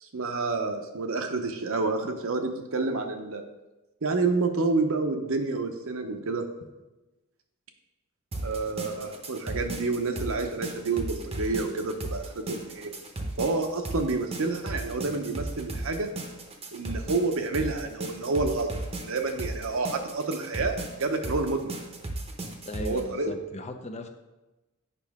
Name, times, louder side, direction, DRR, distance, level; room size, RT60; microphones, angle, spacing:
voice 1, 0.0-3.4 4.0-6.4 8.4-13.0 13.4-16.1 16.7-21.7 22.8-23.3, right 3 dB, 65° right, 6 dB, 0.8 m, -29 dB
sound 1, 8.3-23.0, right 2 dB, 25° right, 0.8 m, -36 dB
voice 2, 22.6-24.1, left 1 dB, 30° left, 6 dB, 0.6 m, -37 dB
8.3 x 5.5 x 3.6 m, 1.1 s
head